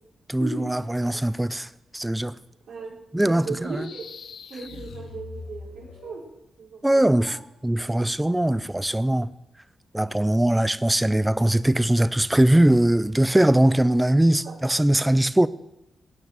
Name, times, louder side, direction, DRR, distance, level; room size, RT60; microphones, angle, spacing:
voice 1, 0.3-2.4 3.1-3.9 6.8-9.3 9.9-15.5, right 1 dB, 5° right, 0.5 m, -21 dB
voice 2, 3.2-4.0 4.5-6.2 6.6-7.4 14.4-14.5, right 4 dB, 80° right, 5.1 m, -36 dB
sound 1, 3.5-6.3, left 5 dB, 70° left, 1.1 m, -42 dB
16.0 x 9.4 x 7.5 m
wide cardioid pair, 145°, 0 cm